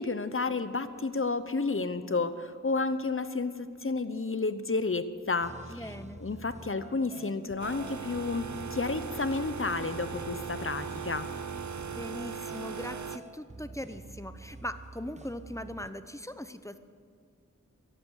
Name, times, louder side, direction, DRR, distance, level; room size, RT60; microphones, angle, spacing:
voice 1, 0.0-5.9 6.2-11.3, left 3 dB, 40° left, 12 dB, 0.9 m, -31 dB
sound 1, 5.4-15.9, right 2 dB, 20° right, 0.7 m, -47 dB
voice 2, 5.7-6.2 11.9-16.8, left 1 dB, 10° left, 11 dB, 0.8 m, -40 dB
sound 2, 7.6-13.2, right 6 dB, 65° right, 0.7 m, -39 dB
14.0 x 11.0 x 8.3 m, 2.1 s
wide cardioid pair, 45°, 32 cm